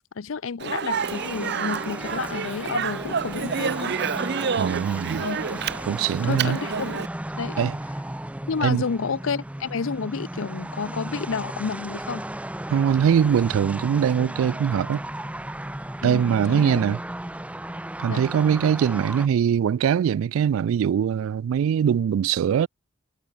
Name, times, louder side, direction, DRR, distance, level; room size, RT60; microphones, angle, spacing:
voice 1, 0.2-3.9 5.2-5.6 6.0-7.0 7.3-7.7 8.5-12.3 16.0-16.8 18.1-18.3, left 5 dB, 70° left, 0.6 m, -30 dB
Speech, 0.6-7.1, right 6 dB, 55° right, 0.7 m, -29 dB
sound 1, 0.9-19.3, right 1 dB, 5° right, 0.6 m, -35 dB
voice 2, 4.6-5.2 5.9-6.6 7.6-7.7 8.6-8.8 12.7-15.0 16.0-17.0 18.0-22.7, right 8 dB, 75° right, 0.3 m, -22 dB
head